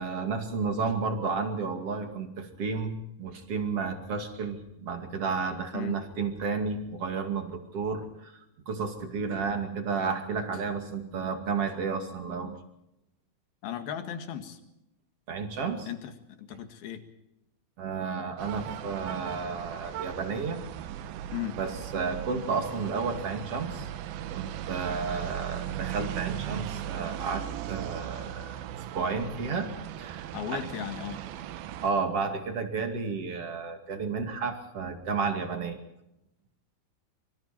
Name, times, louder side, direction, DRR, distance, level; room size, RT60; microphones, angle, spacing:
voice 1, 0.0-12.6 15.3-15.9 17.8-20.6 21.6-23.9 24.3-28.6 28.9-29.7 30.0-30.7 31.8-35.8, right 5 dB, 45° right, 5 dB, 3.0 m, -32 dB
voice 2, 13.6-14.6 15.9-17.0 21.3-21.6 30.3-31.3, left 10 dB, 75° left, 7 dB, 3.8 m, -36 dB
sound 1, 18.4-31.9, right 11 dB, 80° right, 2.8 m, -38 dB
26.0 x 25.0 x 4.5 m, 0.87 s
omnidirectional pair, 4.4 m